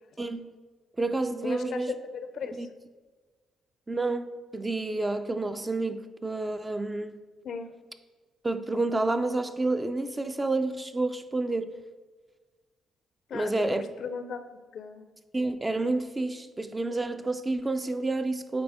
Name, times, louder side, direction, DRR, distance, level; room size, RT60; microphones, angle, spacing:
voice 1, 0.2-0.6 1.0-1.9 2.6-2.7 3.9-7.2 8.4-11.8 13.3-13.8 15.3-18.6, right 2 dB, 20° right, 0.4 m, -29 dB
voice 2, 1.4-1.8 2.1-2.7 7.4-7.7 13.3-15.0, left 5 dB, 60° left, 0.5 m, -37 dB
8.8 x 3.5 x 3.5 m
cardioid pair, 90°, 0 cm